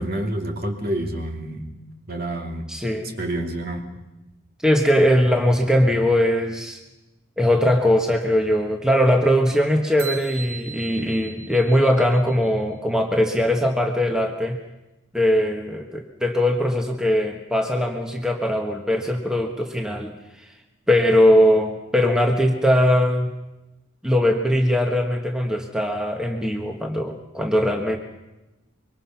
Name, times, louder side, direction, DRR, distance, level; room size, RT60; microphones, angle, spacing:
voice 1, 0.0-1.7 2.1-2.7 3.2-3.8, right 1 dB, 45° right, 3 dB, 2.7 m, -28 dB
voice 2, 2.7-3.1 4.6-6.8 7.4-14.6 15.1-20.5 20.9-23.3 24.0-28.0, equal, 5° right, 2 dB, 1.5 m, -20 dB
sound 1, 10.0-12.6, right 6 dB, 80° right, 3.2 m, -38 dB
25.0 x 23.5 x 5.9 m, 1.0 s
head